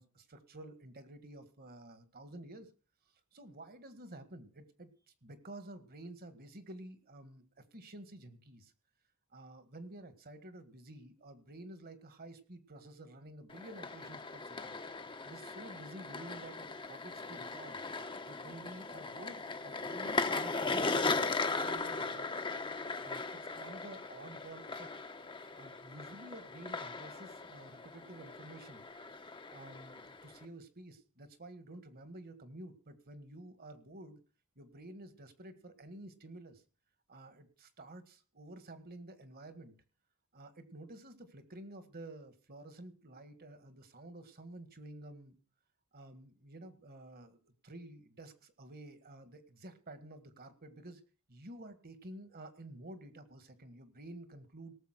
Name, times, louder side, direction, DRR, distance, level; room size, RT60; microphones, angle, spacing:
voice 1, 0.0-2.7 3.3-4.9 5.2-8.7 9.3-14.8 15.2-17.8 18.2-22.3 23.0-24.9 25.6-28.9 29.5-34.2 34.6-36.6 37.1-39.7 40.3-45.4 45.9-47.4 47.6-51.0 51.3-54.7, right 1 dB, 45° right, 10 dB, 1.7 m, -51 dB
sound 1, 13.5-30.5, left 3 dB, 25° left, 1.0 m, -38 dB
18.0 x 7.3 x 5.9 m, 0.37 s
head